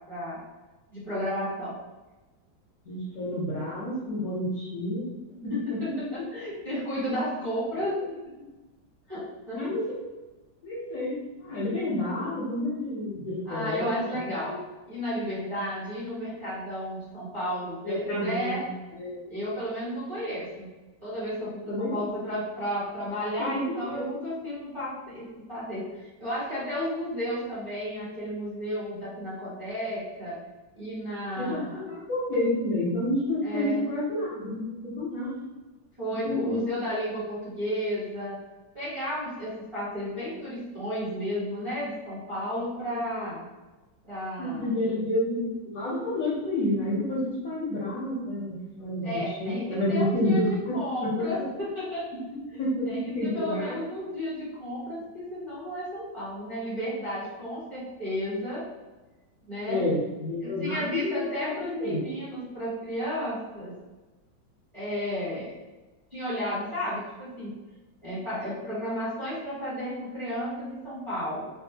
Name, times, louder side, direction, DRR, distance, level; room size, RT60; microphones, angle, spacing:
voice 1, 0.1-0.4 0.9-1.8 5.5-8.2 9.1-9.6 13.4-14.6 14.9-18.6 19.3-20.7 21.0-30.3 30.7-31.8 33.4-33.8 36.0-38.4 38.7-43.5 44.0-44.7 49.0-50.4 50.7-52.0 52.8-58.6 59.5-59.8 60.4-63.7 64.7-65.5 66.1-67.5 68.0-71.4, equal, 20° right, -10 dB, 1.0 m, -33 dB
voice 2, 2.9-5.0 5.4-5.8 9.5-10.2 10.6-14.6 17.8-19.2 21.7-22.0 23.4-24.2 31.3-34.7 35.0-35.3 36.2-36.6 42.8-43.1 44.4-50.6 51.0-51.2 52.3-53.7 54.9-55.0 59.7-62.0, left 1 dB, 60° left, -7 dB, 1.0 m, -30 dB
3.5 x 2.4 x 2.7 m, 1.1 s
omnidirectional pair, 2.0 m